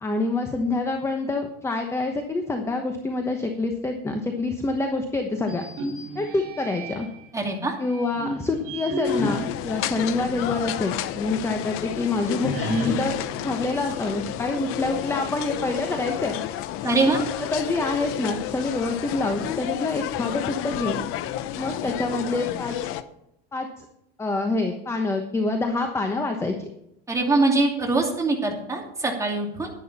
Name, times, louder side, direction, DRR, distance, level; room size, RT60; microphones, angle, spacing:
voice 1, 0.0-5.6 6.1-7.1 7.8-16.4 16.8-17.1 17.4-21.0 21.6-22.8 23.5-23.8 24.2-26.7, left 3 dB, 10° left, 4 dB, 1.1 m, -26 dB
sound 1, 5.4-7.3 7.9-10.8 11.2-11.3 12.4-14.5, equal, 45° right, 3.2 m, -33 dB
voice 2, 7.3-7.7 16.8-17.2 27.1-29.7, right 3 dB, 10° right, 0 dB, 2.7 m, -23 dB
sound 2, 9.0-23.0, left 12 dB, 45° left, 0.8 m, -31 dB
11.0 x 11.0 x 4.3 m, 0.79 s
supercardioid pair, 135°, 30 cm